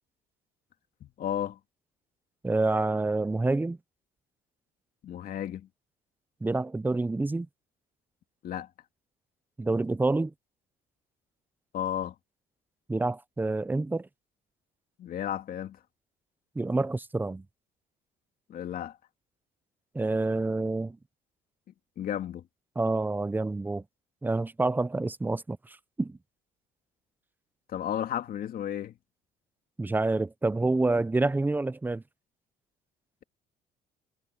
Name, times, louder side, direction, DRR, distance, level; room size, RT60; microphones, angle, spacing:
voice 1, 1.0-1.6 5.0-5.7 8.4-8.7 11.7-12.1 15.0-15.8 18.5-19.0 22.0-22.4 27.7-28.9, left 10 dB, 60° left, 2.6 m, -33 dB
voice 2, 2.4-3.8 6.4-7.5 9.6-10.3 12.9-14.1 16.6-17.4 19.9-21.0 22.8-23.8 24.2-26.2 29.8-32.0, right 2 dB, 10° right, 0.6 m, -28 dB
cardioid pair, 110°, 17 cm